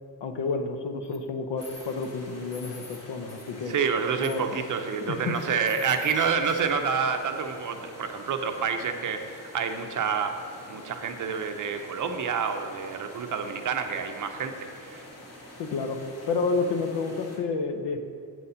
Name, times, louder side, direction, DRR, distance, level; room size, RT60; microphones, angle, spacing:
voice 1, 0.2-3.8 4.2-4.6 5.0-5.4 15.6-16.0 16.3-18.0, left 4 dB, 70° left, 7 dB, 0.8 m, -30 dB
sound 1, 1.0-1.2 1.6-2.1 2.5-3.0 3.3-3.9 4.2-4.8 5.3-6.9, left 2 dB, 15° left, 0.9 m, -48 dB
sound 2, 1.6-17.4, left 1 dB, 35° left, 1.3 m, -47 dB
voice 2, 3.7-15.0, right 6 dB, 45° right, 6 dB, 0.6 m, -28 dB
7.5 x 4.1 x 5.6 m, 2.5 s
cardioid pair, 125°, 43 cm